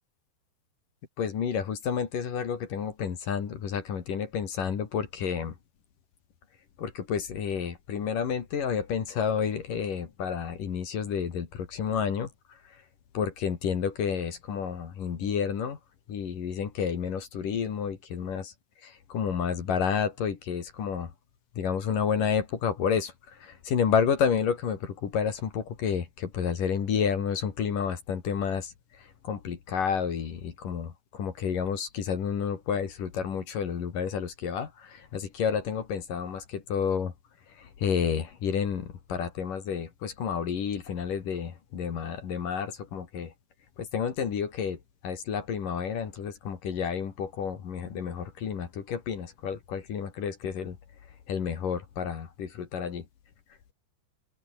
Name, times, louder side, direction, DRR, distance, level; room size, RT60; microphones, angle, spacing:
voice 1, 1.2-5.6 6.8-12.8 13.1-15.8 16.1-18.5 18.8-21.1 21.6-37.1 37.5-43.3 43.8-50.8 51.3-53.1, left 7 dB, 50° left, 3.9 m, -30 dB
open air
omnidirectional pair, 5.1 m